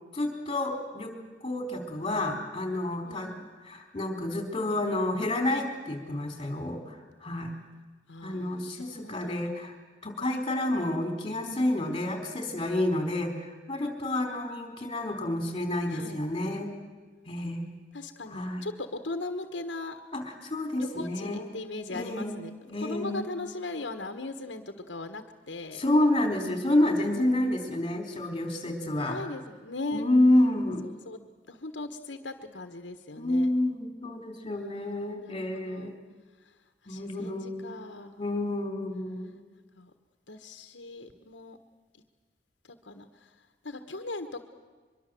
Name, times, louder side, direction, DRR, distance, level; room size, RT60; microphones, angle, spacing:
voice 1, 0.1-1.1 1.4-3.3 3.6-7.5 8.2-9.8 10.0-16.7 17.3-17.7 18.3-18.7 20.1-21.4 21.9-22.4 22.7-23.3 25.7-29.2 29.9-30.9 33.2-36.0 36.9-37.8 38.2-39.3, left 1 dB, 30° left, 6 dB, 4.2 m, -29 dB
voice 2, 3.0-3.5 8.1-9.3 11.8-11.9 15.9-16.2 17.9-20.0 20.8-22.5 22.8-25.8 29.1-30.1 31.0-31.2 31.5-33.5 34.4-35.9 36.8-38.2 39.8-39.9 40.3-41.6 42.8-43.3 43.6-44.4, left 2 dB, 80° left, 8 dB, 1.5 m, -39 dB
23.5 x 23.5 x 7.8 m, 1.4 s
head